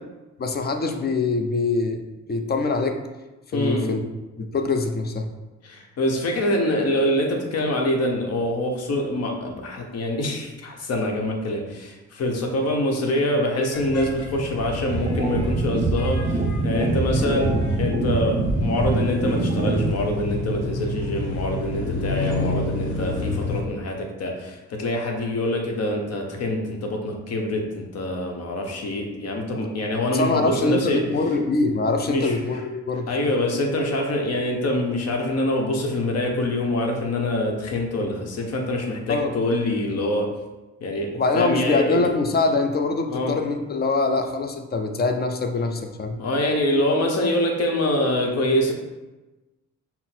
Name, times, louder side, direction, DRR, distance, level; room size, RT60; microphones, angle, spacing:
voice 1, 0.4-2.0 2.3-3.0 3.5-4.0 4.4-5.3 30.1-33.3 39.1-39.4 41.1-46.2, left 3 dB, 35° left, 5 dB, 0.5 m, -24 dB
voice 2, 3.5-3.9 5.6-31.0 32.1-32.4 33.1-40.3 40.8-42.0 43.1-43.4 46.2-48.7, left 1 dB, 60° left, 2 dB, 0.9 m, -25 dB
sound 1, 13.7-23.6, left 2 dB, 90° left, 0.9 m, -29 dB
sound 2, 14.9-19.9, right 3 dB, 25° right, 0.9 m, -24 dB
5.7 x 2.0 x 4.3 m, 1.1 s
cardioid pair, 105°, 29 cm